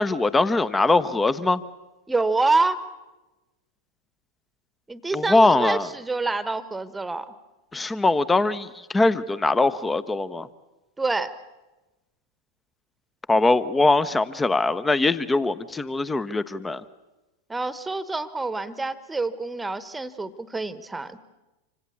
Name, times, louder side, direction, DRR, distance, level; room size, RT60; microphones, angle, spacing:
voice 1, 0.0-1.6 5.1-5.9 7.7-10.5 13.3-16.8, left 2 dB, 10° left, 16 dB, 0.9 m, -21 dB
voice 2, 2.1-2.8 4.9-7.3 11.0-11.3 17.5-21.2, right 3 dB, 10° right, 15 dB, 1.3 m, -26 dB
26.5 x 25.5 x 7.2 m, 1.1 s
figure-of-eight pair, 90°, 0 cm